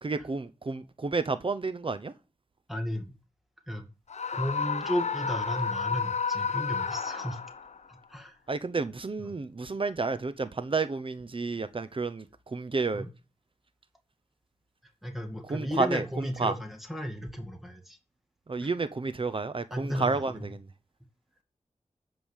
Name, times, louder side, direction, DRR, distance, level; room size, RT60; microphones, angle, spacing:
voice 1, 0.0-2.1 8.5-13.1 15.5-16.5 18.5-20.7, right 4 dB, 45° right, 0.8 m, -31 dB
voice 2, 2.7-3.1 3.7-3.9 4.3-7.4 7.9-8.4 9.2-9.3 12.9-13.1 15.0-18.0 18.6-18.7 19.7-20.4, equal, ahead, 2.2 m, -34 dB
Screaming, 4.1-7.8, left 5 dB, 70° left, 0.8 m, -31 dB
14.0 x 5.3 x 7.2 m
wide cardioid pair, 90°, 12 cm